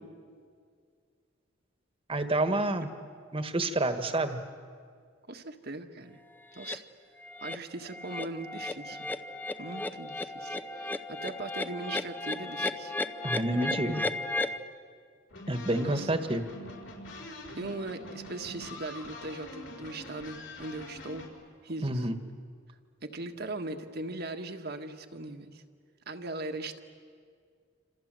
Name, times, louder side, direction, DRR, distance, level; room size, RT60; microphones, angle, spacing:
voice 1, 2.1-2.9 3.3-4.4 13.2-14.0 15.5-16.4 21.8-22.2, right 1 dB, 30° right, 8 dB, 1.6 m, -28 dB
voice 2, 5.3-6.2 6.5-6.8 7.4-9.1 9.6-12.9 15.8-16.2 17.6-21.3 21.6-22.1 23.0-25.6 26.0-26.8, right 2 dB, 55° right, 5 dB, 1.7 m, -39 dB
sound 1, 6.6-6.8 7.2-7.6 7.9-14.6, left 2 dB, 10° left, 0.7 m, -35 dB
sound 2, 15.3-21.3, left 1 dB, 70° left, 4.9 m, -45 dB
28.0 x 27.0 x 7.7 m, 2.1 s
head